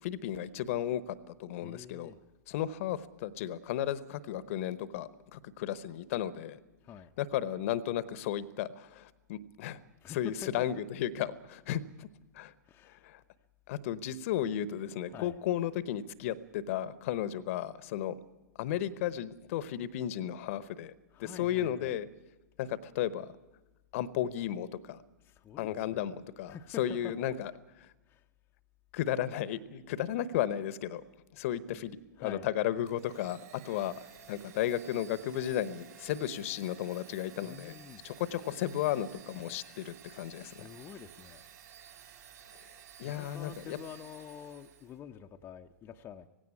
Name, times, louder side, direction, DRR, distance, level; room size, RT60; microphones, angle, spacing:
voice 1, 0.0-2.1 2.5-6.6 7.2-9.8 10.1-12.1 12.3-12.5 12.9-13.2 13.7-18.1 18.6-20.9 21.2-22.1 22.6-23.3 23.9-25.0 25.6-27.5 28.9-31.0 31.3-33.4 33.6-34.0 34.3-37.7 38.0-40.7 43.0-43.8, left 11 dB, 45° left, 0.9 m, -34 dB
voice 2, 1.6-2.2 6.8-7.1 10.0-10.7 12.6-13.1 15.1-15.4 21.1-22.0 25.2-26.1 26.5-27.2 28.1-28.3 31.7-31.8 32.1-32.5 37.4-38.0 40.4-41.4 43.0-46.3, left 8 dB, 20° left, 0.7 m, -47 dB
Domestic sounds home sounds, 32.9-45.0, right 9 dB, 55° right, 5.7 m, -54 dB
18.0 x 16.5 x 9.7 m
figure-of-eight pair, 110°, 10 cm